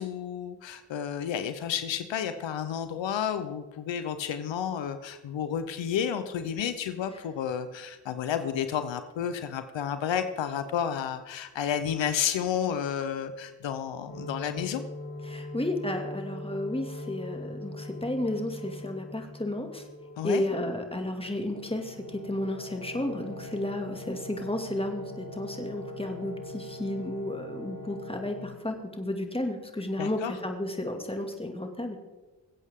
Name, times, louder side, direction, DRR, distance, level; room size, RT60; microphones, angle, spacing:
voice 1, 0.0-14.8 20.2-20.4 30.0-30.3, left 8 dB, 90° left, 10 dB, 0.8 m, -31 dB
sound 1, 14.1-28.5, left 1 dB, 50° left, 3.8 m, -41 dB
voice 2, 15.3-19.8 20.2-32.0, left 1 dB, 15° left, 4 dB, 2.2 m, -32 dB
22.0 x 8.3 x 3.7 m, 1.2 s
supercardioid pair, 40°, 44 cm